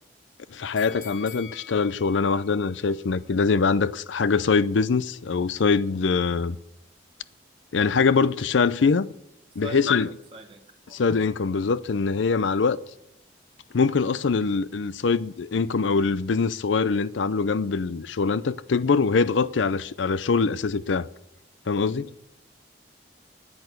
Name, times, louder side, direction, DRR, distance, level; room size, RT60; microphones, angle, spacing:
voice 1, 0.5-6.6 7.7-9.1 9.6-10.1 10.9-12.8 13.7-21.1 21.7-22.1, left 4 dB, 85° left, 0.5 m, -23 dB
sound 1, 0.8-3.9 4.3-4.4, left 9 dB, 45° left, 1.0 m, -47 dB
voice 2, 9.6-11.0 21.8-22.1, right 2 dB, 30° right, 0.9 m, -42 dB
10.5 x 8.8 x 9.5 m
head